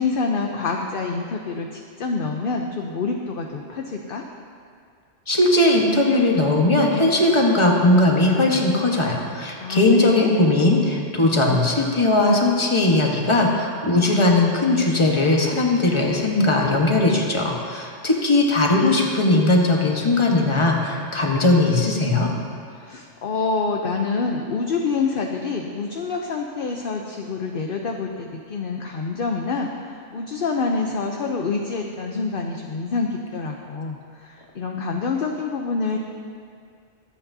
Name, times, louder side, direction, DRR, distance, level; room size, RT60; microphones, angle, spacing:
voice 1, 0.0-4.3 9.6-10.3 22.7-36.0, left 4 dB, 55° left, 1 dB, 0.8 m, -27 dB
voice 2, 5.3-22.3, left 2 dB, 25° left, 0 dB, 1.2 m, -19 dB
23.0 x 8.5 x 2.7 m, 2.2 s
omnidirectional pair, 1.3 m